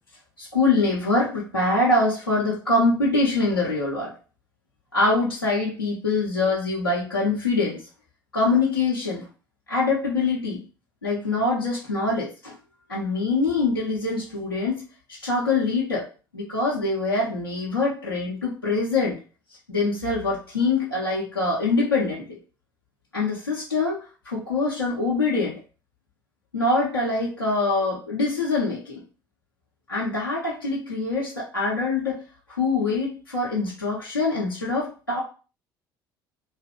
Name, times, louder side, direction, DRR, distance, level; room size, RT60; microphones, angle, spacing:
voice 1, 0.4-4.1 4.9-7.8 8.3-9.2 9.7-10.6 11.0-12.6 12.9-14.8 15.2-16.1 16.3-19.2 19.7-22.4 23.1-24.0 24.2-25.6 26.5-29.0 29.9-32.2 32.5-35.2, left 3 dB, 85° left, -8 dB, 0.8 m, -24 dB
2.7 x 2.5 x 3.6 m, 0.35 s
figure-of-eight pair, 60°, 12 cm